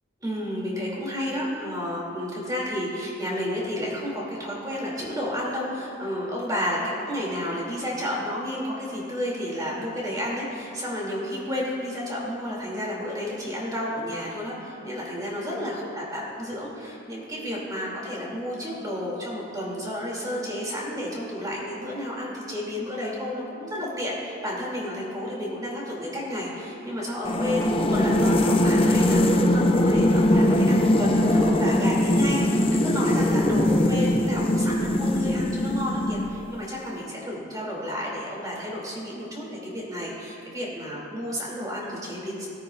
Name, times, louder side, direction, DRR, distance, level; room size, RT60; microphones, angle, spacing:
voice 1, 0.2-42.5, equal, 20° right, -4 dB, 2.6 m, -31 dB
sound 1, 27.2-36.6, left 1 dB, 25° left, 0.5 m, -21 dB
20.5 x 9.5 x 2.4 m, 2.8 s
head